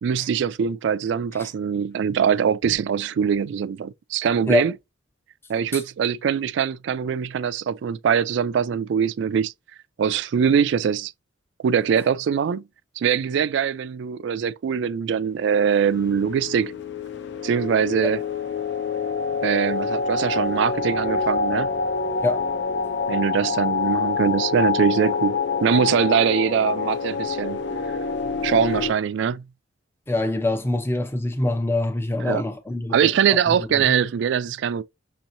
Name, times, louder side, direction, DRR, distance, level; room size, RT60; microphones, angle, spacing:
voice 1, 0.0-4.7 5.5-9.5 10.0-11.1 11.6-12.6 13.0-16.7 17.4-18.2 19.4-21.7 23.1-27.6 28.4-29.4 32.2-32.4 32.9-34.8, right 7 dB, 65° right, 0.3 m, -22 dB
sound 1, 15.5-28.9, left 4 dB, 60° left, 0.5 m, -26 dB
voice 2, 30.1-33.8, left 2 dB, 10° left, 0.5 m, -25 dB
6.2 x 2.9 x 2.6 m
head